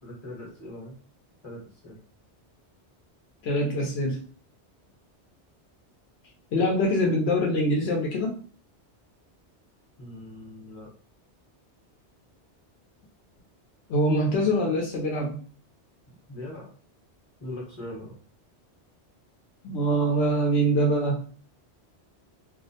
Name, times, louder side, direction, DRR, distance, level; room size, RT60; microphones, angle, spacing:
voice 1, 0.0-1.0 1.4-2.0 10.0-10.9 16.3-16.7 17.4-18.1, left 1 dB, 25° left, -5 dB, 0.9 m, -40 dB
voice 2, 3.4-4.2 6.5-8.3 13.9-15.4 19.6-21.2, equal, 70° left, -1 dB, 0.8 m, -24 dB
2.3 x 2.0 x 2.7 m, 0.41 s
omnidirectional pair, 1.2 m